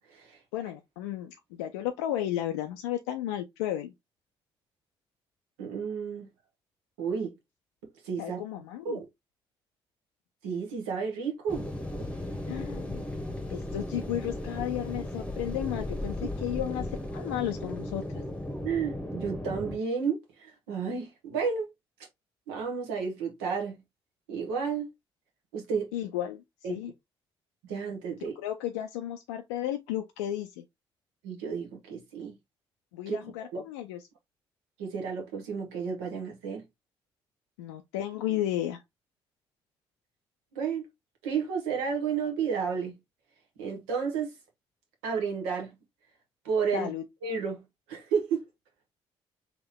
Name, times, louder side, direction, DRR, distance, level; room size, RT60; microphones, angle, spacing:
voice 1, 0.0-0.4 5.6-6.3 7.0-7.3 8.0-8.4 8.8-9.0 10.4-11.6 18.6-21.7 22.5-23.8 24.3-24.9 25.5-25.9 26.6-26.7 27.6-28.3 31.2-32.4 33.1-33.2 33.5-33.6 34.8-36.6 40.5-40.8 41.2-43.0 43.6-44.3 45.0-45.7 46.4-46.9 47.2-47.6 47.9-48.4, right 6 dB, 80° right, 1.1 m, -31 dB
voice 2, 0.5-3.9 8.2-9.0 12.5-13.0 13.5-16.9 17.1-18.2 25.9-26.4 26.7-26.9 28.4-30.6 32.9-34.1 37.6-38.8 46.7-47.0, left 12 dB, 85° left, 0.4 m, -33 dB
sound 1, 11.5-19.8, left 1 dB, 10° left, 1.0 m, -36 dB
3.5 x 2.9 x 3.5 m
hypercardioid pair, 45°, 13 cm